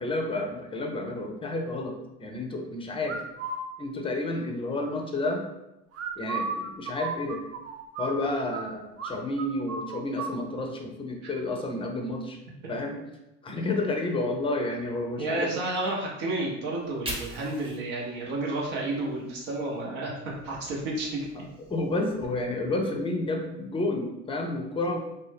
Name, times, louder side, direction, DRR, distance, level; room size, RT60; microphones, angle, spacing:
voice 1, 0.0-1.9 2.2-3.2 3.8-5.4 6.2-7.4 8.0-12.4 12.7-13.0 13.4-15.5 21.7-25.0, left 2 dB, 15° left, 2 dB, 0.5 m, -30 dB
sound 1, 3.0-3.6 5.9-8.6 9.0-9.1 9.4-10.4, right 4 dB, 40° right, 0.5 m, -34 dB
voice 2, 15.2-21.3, right 2 dB, 65° right, -3 dB, 0.8 m, -31 dB
Fire, 16.7-19.8 20.2-22.3, right 1 dB, 15° right, 0.8 m, -43 dB
2.6 x 2.1 x 3.3 m, 0.90 s
hypercardioid pair, 75°, 39 cm